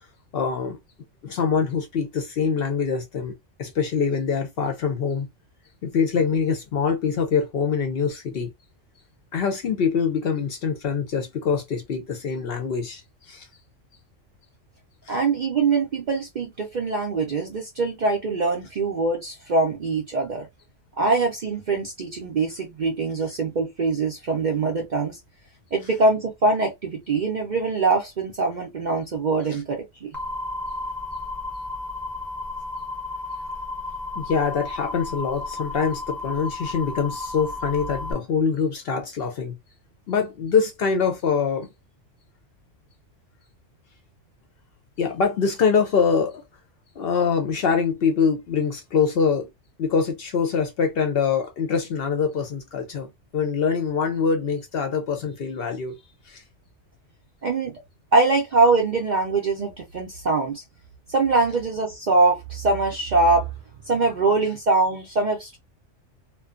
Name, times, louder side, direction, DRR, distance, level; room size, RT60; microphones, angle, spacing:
voice 1, 0.3-0.8 1.2-3.3 3.6-5.3 5.8-8.5 9.3-13.5 15.1-15.2 29.5-29.6 34.2-39.6 40.1-41.7 45.0-46.4 47.0-49.5 49.8-56.0 56.3-56.4, left 6 dB, 60° left, 0.7 m, -24 dB
voice 2, 15.1-20.5 21.0-25.2 25.7-30.2 57.4-57.7 58.1-60.6 61.1-63.5 63.9-65.6, right 3 dB, 55° right, 0.5 m, -23 dB
sound 1, 30.1-38.1, left 2 dB, ahead, 0.6 m, -33 dB
2.5 x 2.2 x 2.4 m
omnidirectional pair, 1.3 m